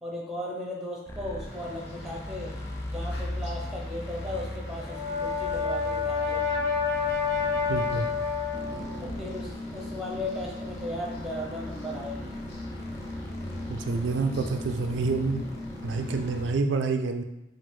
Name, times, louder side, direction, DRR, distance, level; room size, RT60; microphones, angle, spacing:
voice 1, 0.0-2.5 2.9-6.4 9.0-12.4, left 1 dB, ahead, -3 dB, 0.8 m, -36 dB
sound 1, 1.1-16.5, left 1 dB, 15° left, 0.3 m, -40 dB
sound 2, 1.4-16.5, left 1 dB, 75° left, 0.9 m, -40 dB
Brass instrument, 4.7-9.0, left 5 dB, 45° left, 1.3 m, -28 dB
voice 2, 7.7-8.1 13.7-15.5 15.8-17.2, right 4 dB, 80° right, 7 dB, 0.3 m, -28 dB
4.9 x 2.5 x 3.7 m, 0.89 s
head